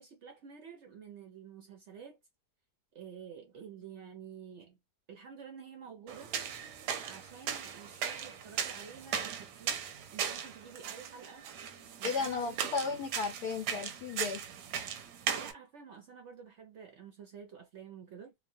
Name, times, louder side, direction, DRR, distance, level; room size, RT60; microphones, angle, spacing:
voice 1, 0.0-2.2 2.9-4.8 5.1-6.3 7.0-9.8 10.1-11.4 12.0-12.6 15.4-18.3, right 7 dB, 65° right, 0.7 m, -50 dB
sound 1, 6.1-15.5, right 8 dB, 85° right, 1.1 m, -38 dB
voice 2, 12.0-14.4, left 5 dB, 85° left, 1.1 m, -34 dB
3.0 x 2.0 x 2.6 m
omnidirectional pair, 1.7 m